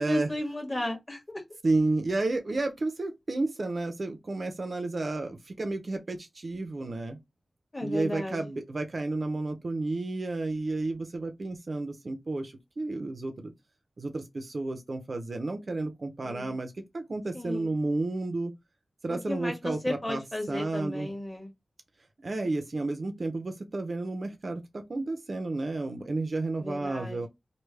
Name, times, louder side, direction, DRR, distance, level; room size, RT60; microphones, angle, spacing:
voice 1, 0.0-1.4 7.7-8.4 16.2-16.5 17.3-17.7 19.1-21.5 26.6-27.3, left 1 dB, 20° left, 1.4 m, -34 dB
voice 2, 1.6-7.2 7.8-13.5 14.0-18.5 19.0-20.2 20.5-21.1 22.2-27.3, right 2 dB, 50° right, 0.6 m, -31 dB
3.2 x 2.2 x 3.3 m
wide cardioid pair, 105°, 0 cm